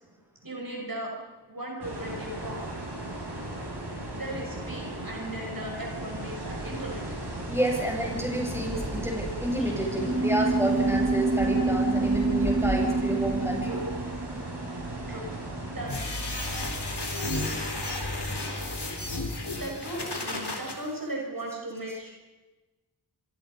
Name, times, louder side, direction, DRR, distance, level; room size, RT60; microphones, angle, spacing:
voice 1, 0.4-1.1 1.5-2.6 4.1-7.1 9.6-9.7 13.6-14.1 15.1-15.3 15.6-16.0 19.5-22.1, right 1 dB, 55° right, -1 dB, 6.0 m, -37 dB
sound 1, 1.8-16.0, right 1 dB, 90° right, 7.1 m, -36 dB
voice 2, 7.5-13.8, right 1 dB, 5° right, -1 dB, 8.0 m, -29 dB
sound 2, 9.9-15.8, right 3 dB, 30° right, 1.9 m, -28 dB
sound 3, 15.9-20.7, left 2 dB, 80° left, 4.2 m, -32 dB
26.0 x 23.5 x 5.5 m, 1.2 s
wide cardioid pair, 45°, 40 cm